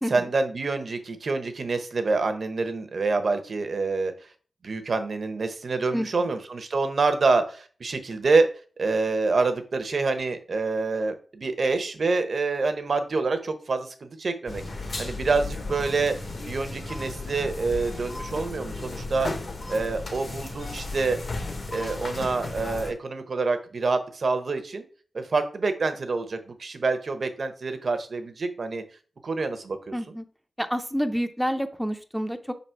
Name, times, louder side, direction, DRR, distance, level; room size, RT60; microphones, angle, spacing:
voice 1, 0.1-4.1 4.6-8.5 8.8-14.6 15.0-16.1 16.5-19.3 19.7-21.2 21.7-24.8 25.1-28.8 29.2-29.9, right 3 dB, 65° right, 9 dB, 0.9 m, -26 dB
voice 2, 5.9-6.3 29.9-30.2 30.6-32.5, equal, ahead, 8 dB, 0.6 m, -28 dB
sound 1, 14.5-22.9, left 2 dB, 55° left, 1.3 m, -35 dB
5.4 x 4.1 x 4.5 m, 0.40 s
wide cardioid pair, 80°, 0 cm